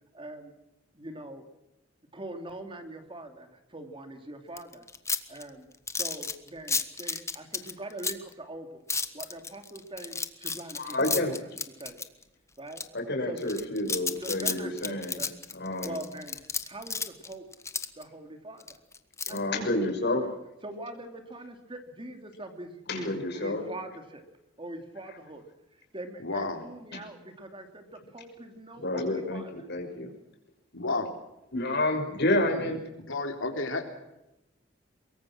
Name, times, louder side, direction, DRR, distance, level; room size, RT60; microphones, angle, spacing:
voice 1, 0.1-0.5 0.9-1.4 2.1-4.9 5.3-5.7 6.0-8.8 9.1-11.1 11.8-12.0 12.6-12.8 13.2-13.5 14.2-15.4 15.8-16.4 16.7-17.4 18.0-18.8 19.3-19.7 20.2-20.3 20.6-24.2 24.6-25.4 25.9-29.7, right 1 dB, 25° right, 6 dB, 2.9 m, -42 dB
sound 1, 4.6-8.3 8.9-12.2 12.7-12.8 13.4-18.0 18.6-19.4, left 4 dB, 15° left, 1.4 m, -32 dB
voice 2, 10.7-11.4 12.9-15.2 15.5-16.0 19.3-20.2 22.9-23.6 26.9-27.0 28.8-30.1 31.5-32.8, left 1 dB, 60° left, 3 dB, 6.0 m, -29 dB
voice 3, 26.2-26.7 30.7-31.1 33.1-33.9, left 3 dB, 85° left, 5 dB, 3.4 m, -31 dB
23.5 x 22.5 x 6.2 m, 0.92 s
head